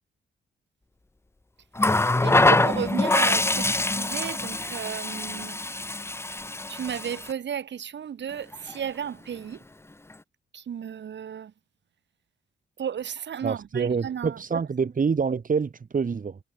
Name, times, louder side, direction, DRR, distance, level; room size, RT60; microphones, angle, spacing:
Water tap faucet, 1.8-7.3 8.5-8.7, left 2 dB, 15° left, 1.0 m, -24 dB
voice 1, 2.2-5.6 6.7-9.6 10.5-11.5 12.8-14.4, right 8 dB, 70° right, 7.0 m, -33 dB
voice 2, 13.4-16.4, right 5 dB, 45° right, 4.5 m, -26 dB
cardioid pair, 85°, 19 cm